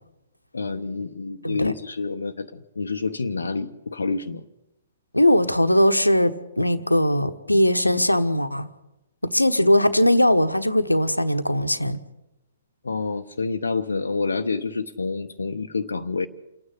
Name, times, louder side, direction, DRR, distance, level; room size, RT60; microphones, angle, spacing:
voice 1, 0.5-4.4 12.8-16.3, left 4 dB, 70° left, 0.9 m, -28 dB
voice 2, 5.1-8.7 9.2-12.0, left 1 dB, 85° left, 1.2 m, -20 dB
28.5 x 9.6 x 9.9 m
figure-of-eight pair, 120°, 0 cm